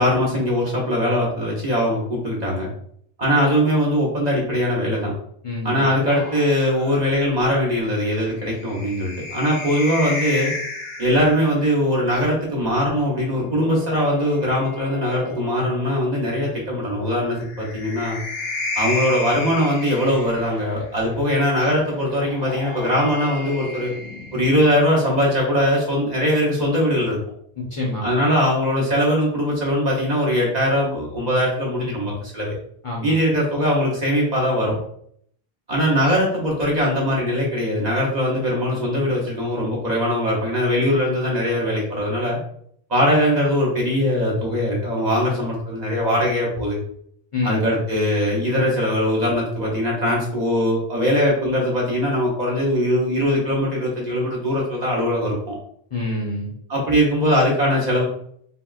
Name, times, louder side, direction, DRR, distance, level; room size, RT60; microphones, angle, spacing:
voice 1, 0.0-2.7 3.2-5.1 5.6-10.5 11.0-18.2 18.8-23.9 24.3-27.2 28.0-32.5 33.0-34.8 35.7-42.4 42.9-46.8 47.4-55.6 56.7-58.0, equal, 50° right, -3 dB, 0.8 m, -21 dB
voice 2, 5.4-5.9 27.6-28.0 32.8-33.1 47.3-47.6 55.9-56.5, left 2 dB, 35° left, -4 dB, 0.7 m, -26 dB
sound 1, 6.1-11.6 13.0-16.0 17.3-20.8 22.0-25.0, left 2 dB, 75° left, 0.8 m, -33 dB
3.7 x 2.2 x 2.3 m, 0.66 s
omnidirectional pair, 1.0 m